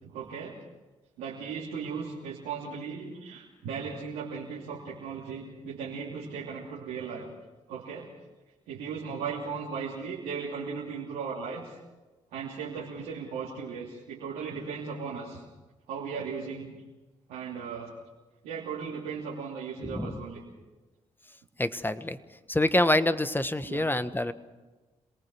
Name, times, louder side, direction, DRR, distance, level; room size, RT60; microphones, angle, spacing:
voice 1, 0.0-0.6 1.2-7.3 7.7-8.1 8.7-11.7 12.3-15.4 15.9-16.7 17.3-17.9 18.4-20.4 23.7-23.9, right 6 dB, 90° right, -6 dB, 3.0 m, -37 dB
voice 2, 21.6-22.2 22.5-24.3, left 1 dB, 15° left, 11 dB, 1.4 m, -26 dB
27.0 x 19.0 x 6.3 m, 1.2 s
supercardioid pair, 45°, 14 cm